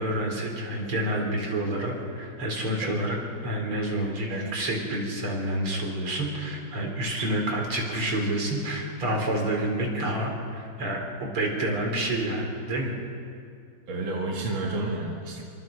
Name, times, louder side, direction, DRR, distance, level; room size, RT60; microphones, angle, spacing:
voice 1, 0.0-12.9 15.4-15.5, right 1 dB, 85° right, 1 dB, 4.7 m, -28 dB
voice 2, 13.9-15.4, right 2 dB, 65° right, -1 dB, 2.6 m, -30 dB
27.5 x 25.0 x 5.2 m, 2.5 s
omnidirectional pair, 2.3 m